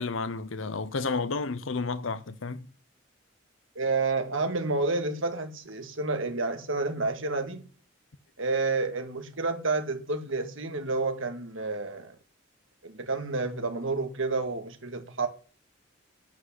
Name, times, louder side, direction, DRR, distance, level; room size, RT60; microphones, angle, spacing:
voice 1, 0.0-2.7, left 4 dB, 75° left, 0.9 m, -31 dB
voice 2, 3.8-7.6 8.4-12.2 12.8-15.3, right 3 dB, 75° right, 2.2 m, -30 dB
10.0 x 6.3 x 8.2 m
head